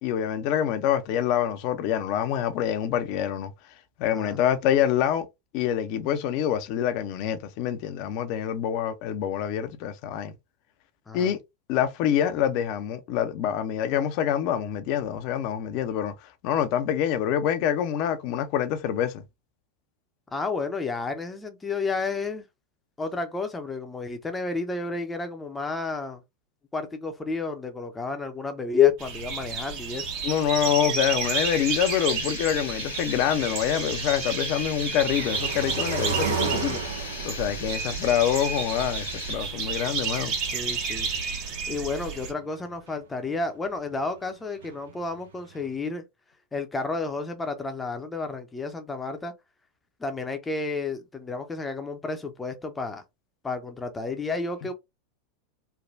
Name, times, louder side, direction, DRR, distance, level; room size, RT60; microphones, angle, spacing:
voice 1, 0.0-3.5 4.0-5.3 5.5-10.3 11.1-11.4 11.7-16.1 16.4-19.2 30.2-36.8 37.2-40.3, left 10 dB, 55° left, 0.6 m, -26 dB
voice 2, 20.3-22.4 23.0-26.2 26.7-30.1 40.5-41.1 41.7-46.0 46.5-49.3 50.0-53.0 53.4-54.7, left 4 dB, 15° left, 0.6 m, -30 dB
sound 1, 29.0-42.3, right 5 dB, 50° right, 1.1 m, -31 dB
sound 2, 31.2-39.3, left 4 dB, 90° left, 1.0 m, -39 dB
sound 3, 35.1-39.9 40.1-40.2 40.4-40.5 41.2-41.4 41.7-41.8 42.1-42.2 42.4-42.9 44.2-44.3 44.6-45.6, right 5 dB, 75° right, 0.6 m, -33 dB
3.2 x 2.2 x 2.4 m
hypercardioid pair, 90°, 0 cm